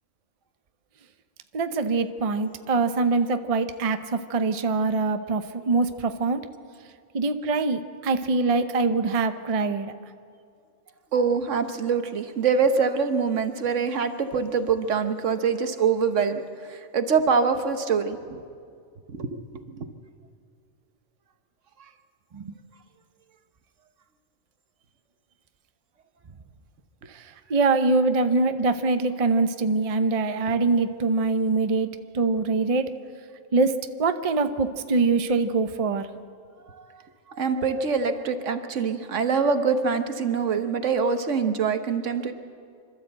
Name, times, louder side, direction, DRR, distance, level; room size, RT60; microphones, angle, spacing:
voice 1, 1.5-6.4 7.1-9.9 22.3-22.5 27.5-31.9 32.1-32.9 33.5-36.1, right 3 dB, 35° right, 9 dB, 0.7 m, -24 dB
voice 2, 11.1-18.4 19.1-19.4 19.8-19.9 36.8-36.9 37.4-42.3, right 5 dB, 70° right, 8 dB, 1.4 m, -24 dB
26.0 x 12.5 x 7.9 m, 2.3 s
omnidirectional pair, 1.3 m